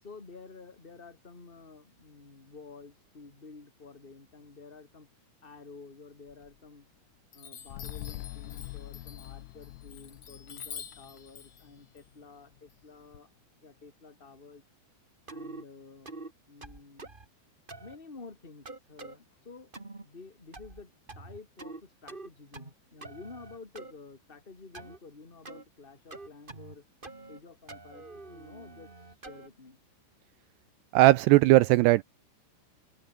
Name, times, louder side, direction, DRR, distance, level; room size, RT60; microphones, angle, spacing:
voice 1, 0.0-5.1 5.4-6.9 7.3-13.3 13.6-14.6 15.3-17.1 17.8-19.7 20.0-26.8 27.3-29.8, left 4 dB, 15° left, 2.7 m, -50 dB
Chime, 6.3-7.0 7.3-13.2, left 8 dB, 50° left, 1.8 m, -48 dB
sound 1, 7.7-12.2 12.5-12.6, left 19 dB, 85° left, 2.2 m, -44 dB
sound 2, 15.3-15.6 16.1-16.3 16.6-17.3 17.7-18.0 18.7-19.2 19.7-20.1 20.5-20.8 21.1-21.8 22.1-22.7 23.0-23.9 24.7-25.0 25.4-25.6 26.1-26.8 27.0-27.4 27.7-29.5, right 3 dB, 20° right, 1.3 m, -45 dB
voice 2, 30.9-32.0, right 18 dB, 80° right, 2.5 m, -19 dB
open air
omnidirectional pair, 5.2 m